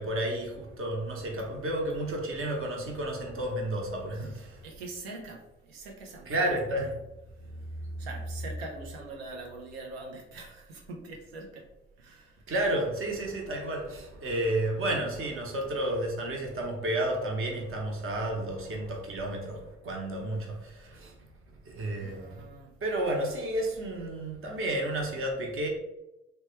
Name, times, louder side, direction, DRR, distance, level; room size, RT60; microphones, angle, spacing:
voice 1, 0.0-4.6 6.2-6.9 7.4-8.5 12.5-21.2 21.7-22.4 22.8-25.7, right 1 dB, 45° right, 0.9 m, -32 dB
voice 2, 4.1-6.6 8.0-11.6 12.0-12.4 21.9-22.7, right 3 dB, 90° right, 0.5 m, -43 dB
3.0 x 2.2 x 3.1 m
hypercardioid pair, 40°, 30 cm